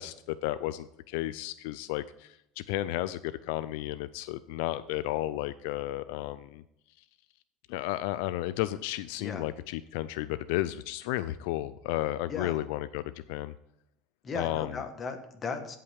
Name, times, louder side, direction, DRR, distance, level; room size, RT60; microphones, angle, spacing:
voice 1, 0.0-6.6 7.7-13.0 13.3-13.5 14.3-14.8, left 15 dB, 75° left, 14 dB, 0.3 m, -33 dB
voice 2, 14.2-15.8, left 4 dB, 25° left, 5 dB, 1.3 m, -36 dB
16.5 x 5.6 x 3.4 m, 0.79 s
cardioid pair, 155°, 0 cm